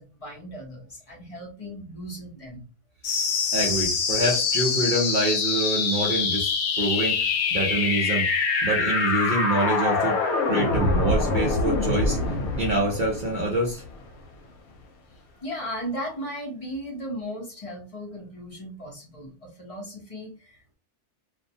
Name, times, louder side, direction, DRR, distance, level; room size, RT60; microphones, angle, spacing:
voice 1, 0.0-2.7 15.1-20.7, equal, 35° left, -2 dB, 0.6 m, -37 dB
sound 1, 3.0-14.1, left 4 dB, 85° left, 1.1 m, -25 dB
voice 2, 3.5-7.2 7.5-8.2 8.6-10.2 10.5-12.2 12.6-13.8, right 1 dB, 55° right, -3 dB, 0.6 m, -26 dB
2.6 x 2.1 x 2.6 m, 0.33 s
omnidirectional pair, 1.5 m